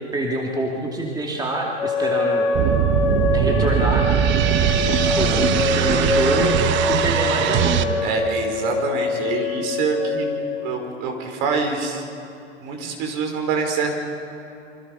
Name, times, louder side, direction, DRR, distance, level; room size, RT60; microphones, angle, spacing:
voice 1, 0.1-2.5 3.3-4.1 4.9-8.0, right 1 dB, 10° right, -1 dB, 2.5 m, -26 dB
sound 1, 1.8-10.7, left 3 dB, 80° left, 3.2 m, -25 dB
sound 2, 2.5-7.8, right 9 dB, 35° right, 1.2 m, -20 dB
voice 2, 5.0-5.5 8.0-12.0 12.6-13.9, right 4 dB, 50° right, 3 dB, 5.4 m, -26 dB
29.0 x 25.0 x 5.5 m, 2.8 s
hypercardioid pair, 105°, 35 cm